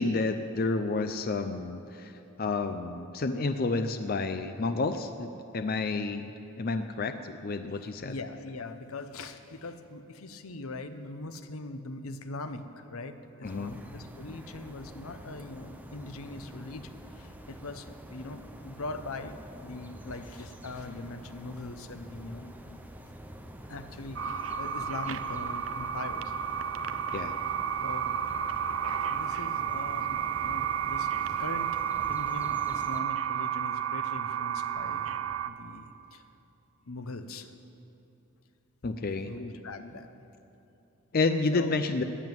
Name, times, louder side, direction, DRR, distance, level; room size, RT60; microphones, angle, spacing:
voice 1, 0.0-2.1 2.4-8.1 13.4-13.8 27.1-27.3 38.8-39.3 41.1-42.0, left 3 dB, 45° left, 8 dB, 0.5 m, -30 dB
voice 2, 8.0-22.8 23.7-26.3 27.8-28.3 29.1-31.8 32.1-35.2 35.4-36.2 36.9-37.5 39.2-40.2 41.5-41.7, left 2 dB, 80° left, 9 dB, 0.8 m, -41 dB
sound 1, 13.4-33.0, equal, 5° right, 0.7 m, -47 dB
sound 2, 24.2-35.5, right 8 dB, 65° right, 0.5 m, -32 dB
13.5 x 9.1 x 9.3 m, 2.9 s
head